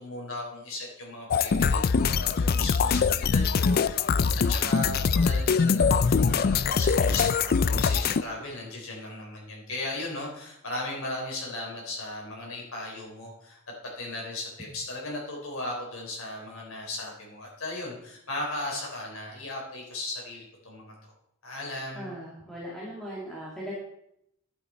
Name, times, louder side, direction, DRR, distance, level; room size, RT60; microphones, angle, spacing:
voice 1, 0.0-13.6 14.0-21.1 21.4-22.1, left 2 dB, 80° left, -2 dB, 3.7 m, -37 dB
sound 1, 1.3-8.2, left 5 dB, 45° left, 0.4 m, -23 dB
voice 2, 21.9-23.7, equal, ahead, -7 dB, 2.2 m, -38 dB
11.5 x 8.8 x 4.3 m, 0.77 s
head